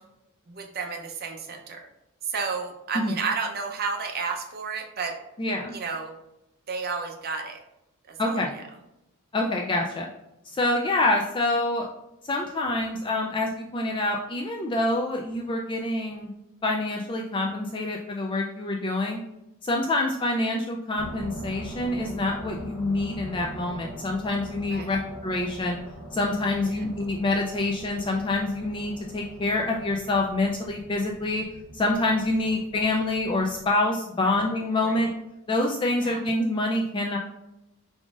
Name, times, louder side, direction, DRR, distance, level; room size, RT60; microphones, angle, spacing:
voice 1, 0.5-1.8 2.3-5.2 5.7-6.1 6.7-7.6 8.2-8.5 24.7-24.9 34.8-35.0 36.0-36.2, right 5 dB, 45° right, 3 dB, 0.6 m, -31 dB
voice 2, 5.4-5.7 8.2-8.5 9.3-10.1 10.5-11.9 12.2-16.3 16.6-19.2 19.6-25.8 26.1-31.4 31.7-35.1 35.5-37.2, left 2 dB, 25° left, 1 dB, 0.3 m, -26 dB
sound 1, 21.0-33.7, right 1 dB, 80° left, 1.1 m, -42 dB
5.0 x 3.7 x 2.4 m, 0.90 s
head